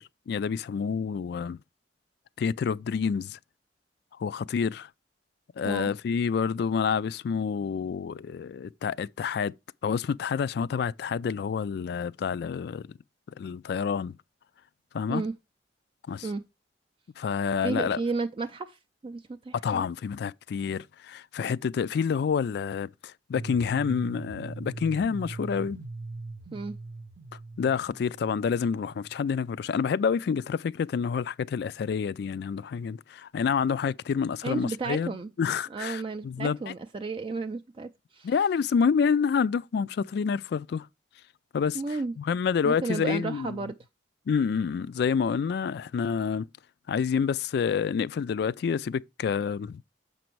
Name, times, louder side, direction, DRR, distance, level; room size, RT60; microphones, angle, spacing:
voice 1, 0.3-1.6 2.4-3.4 4.2-4.9 5.6-9.5 9.8-12.9 13.4-14.2 14.9-15.2 16.1-16.3 17.2-18.0 19.6-25.8 27.6-36.7 38.2-40.9 41.5-41.8 42.2-43.6 44.3-46.4 46.9-49.8, left 6 dB, 65° left, 0.3 m, -28 dB
voice 2, 17.6-19.9 26.5-26.8 34.4-35.3 35.7-38.3 41.7-42.1 42.6-43.7, right 3 dB, 30° right, 0.3 m, -33 dB
sound 1, 23.3-29.3, right 3 dB, 75° right, 0.6 m, -41 dB
6.8 x 5.2 x 4.6 m
head